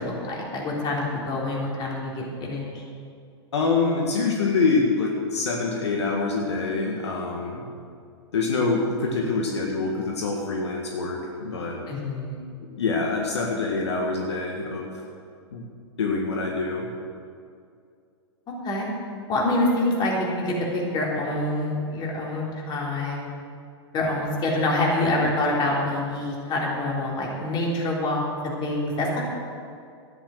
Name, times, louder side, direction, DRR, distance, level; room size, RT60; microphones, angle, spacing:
voice 1, 0.0-2.7 11.9-12.4 18.6-18.9 19.3-23.3 23.9-29.2, left 1 dB, 30° left, -3 dB, 3.7 m, -26 dB
voice 2, 3.5-7.6 8.3-11.8 12.8-15.0 15.5-15.6 16.0-16.9, left 3 dB, 75° left, 0 dB, 1.8 m, -25 dB
12.5 x 10.5 x 6.6 m, 2.4 s
hypercardioid pair, 110°, 14 cm